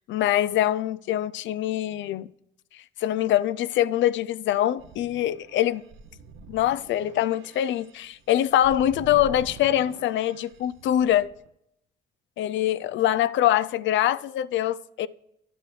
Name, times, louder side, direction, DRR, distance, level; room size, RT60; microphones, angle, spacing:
voice 1, 0.1-2.3 3.0-5.8 6.5-11.3 12.4-15.1, left 12 dB, 70° left, 0.4 m, -24 dB
sound 1, 4.8-11.5, right 4 dB, 85° right, 0.9 m, -45 dB
11.5 x 7.8 x 3.2 m
cardioid pair, 90°, 20 cm